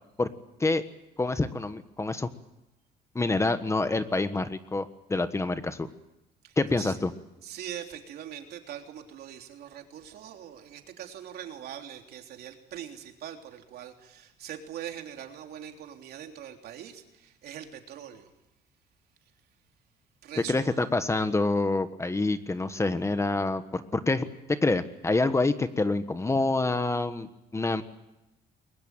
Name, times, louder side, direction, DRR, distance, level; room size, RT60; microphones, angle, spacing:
voice 1, 1.2-2.3 3.1-5.9 6.6-7.1 20.4-27.8, left 2 dB, 15° left, 11 dB, 1.4 m, -27 dB
voice 2, 6.4-7.0 7.4-18.3 20.2-20.8, right 10 dB, 70° right, 4 dB, 3.4 m, -42 dB
22.5 x 20.5 x 9.1 m, 0.92 s
cardioid pair, 110°, 17 cm